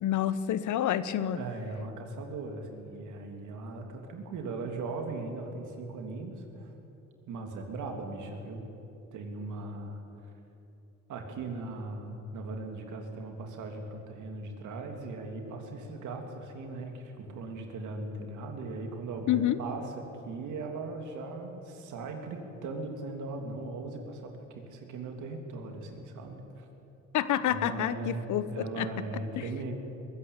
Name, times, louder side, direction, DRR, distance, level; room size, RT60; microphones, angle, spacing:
voice 1, 0.0-1.4 19.3-19.6 27.1-28.9, left 11 dB, 75° left, 14 dB, 1.0 m, -28 dB
voice 2, 1.3-6.7 7.3-8.6 9.1-10.0 11.1-26.7 27.5-29.7, right 3 dB, 75° right, 3 dB, 3.1 m, -39 dB
21.5 x 15.0 x 9.0 m, 2.9 s
cardioid pair, 90°, 30 cm